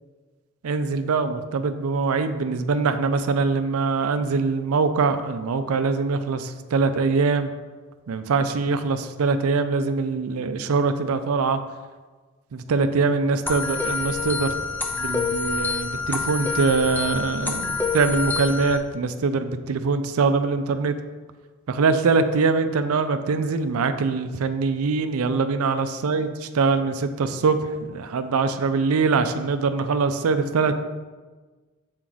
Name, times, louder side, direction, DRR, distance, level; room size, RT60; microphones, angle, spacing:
voice 1, 0.6-7.5 8.1-11.6 12.5-14.5 14.9-21.0 21.7-26.3 26.5-30.8, right 4 dB, 75° right, 9 dB, 0.4 m, -23 dB
sound 1, 13.5-18.8, left 4 dB, 10° left, 0.4 m, -27 dB
6.1 x 4.4 x 3.9 m, 1.3 s
head